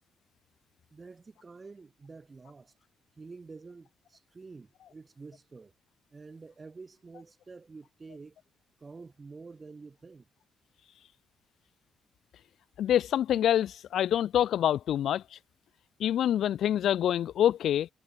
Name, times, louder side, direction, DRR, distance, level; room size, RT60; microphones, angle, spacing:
voice 1, 0.9-2.8 3.2-5.7 6.1-8.4 8.8-10.3, right 4 dB, 30° right, 2.6 m, -48 dB
voice 2, 12.8-15.2 16.0-17.9, left 10 dB, 70° left, 0.3 m, -26 dB
cardioid pair, 90°, 0 cm